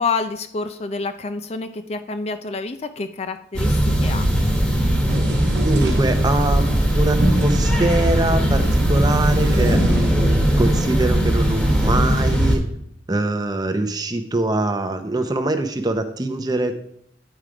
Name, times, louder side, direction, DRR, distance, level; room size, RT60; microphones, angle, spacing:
voice 1, 0.0-4.3, left 4 dB, 35° left, 10 dB, 0.4 m, -28 dB
sound 1, 3.5-12.6, equal, 5° left, 1.3 m, -19 dB
sound 2, 5.1-10.2, right 1 dB, 60° right, 1.1 m, -30 dB
voice 2, 5.6-12.6 13.1-16.7, right 2 dB, 20° right, 7 dB, 0.7 m, -23 dB
9.1 x 4.8 x 4.9 m, 0.69 s
head